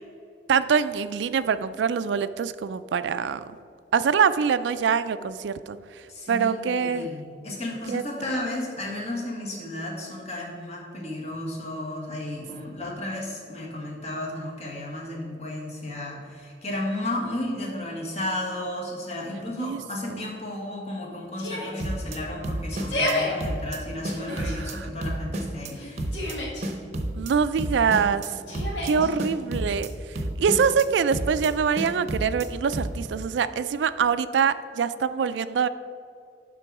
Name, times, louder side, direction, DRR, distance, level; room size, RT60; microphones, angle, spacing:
voice 1, 0.5-3.4 3.9-5.8 6.3-7.1 7.9-8.0 19.6-19.8 20.1-20.3 24.3-24.9 27.1-28.3 28.8-29.9 30.4-35.7, right 6 dB, 85° right, 13 dB, 0.3 m, -24 dB
voice 2, 6.1-26.0 28.5-29.1, left 1 dB, 40° left, -2 dB, 1.5 m, -33 dB
Yell, 21.4-21.8 22.7-23.3 24.0-24.5 25.7-26.6 28.5-29.1, left 1 dB, 85° left, 1.8 m, -30 dB
sound 1, 21.8-22.2 22.4-23.1 23.4-23.8 24.0-24.7 25.0-25.7 26.0-26.4 26.6-27.3 27.6-28.3 28.5-28.9 29.2-29.9 30.2-30.9 31.1-31.5 31.8-32.5 32.7-33.1, right 1 dB, 40° right, 0.7 m, -30 dB
11.0 x 3.8 x 4.7 m, 2.4 s
head